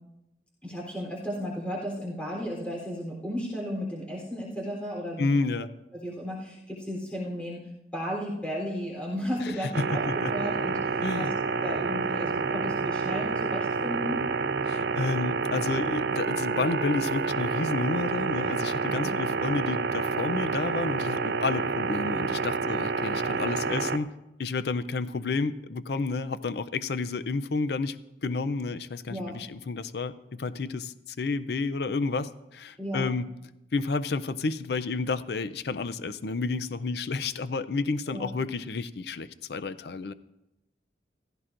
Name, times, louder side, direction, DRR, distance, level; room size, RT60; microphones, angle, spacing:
voice 1, 0.6-5.3 6.0-11.3 11.6-14.3 19.0-19.2 23.2-23.4 29.1-29.4 32.8-33.1 38.1-38.3, equal, 5° left, -3 dB, 3.5 m, -34 dB
voice 2, 5.2-5.7 9.4-10.3 11.0-11.3 14.6-24.1 24.4-28.0 28.2-33.3 33.7-40.1, left 3 dB, 65° left, 14 dB, 0.5 m, -30 dB
sound 1, 9.7-24.0, right 4 dB, 65° right, 0.5 m, -28 dB
15.5 x 15.0 x 2.5 m, 0.89 s
head